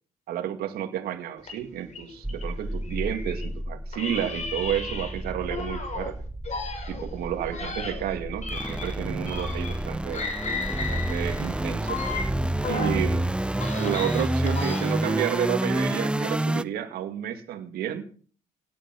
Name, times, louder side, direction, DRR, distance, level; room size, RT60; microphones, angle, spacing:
voice 1, 0.3-6.2 6.9-10.3 10.8-12.0 12.7-13.4 13.7-18.0, right 10 dB, 80° right, 6 dB, 2.2 m, -31 dB
sound 1, 1.4-3.5 3.9-6.1 6.4-9.9 10.1-13.0 13.4-15.1, left 4 dB, 45° left, 6.0 m, -35 dB
sound 2, 2.2-16.6, right 1 dB, 5° right, 0.7 m, -29 dB
17.5 x 10.0 x 6.0 m, 0.43 s
cardioid pair, 95°, 16 cm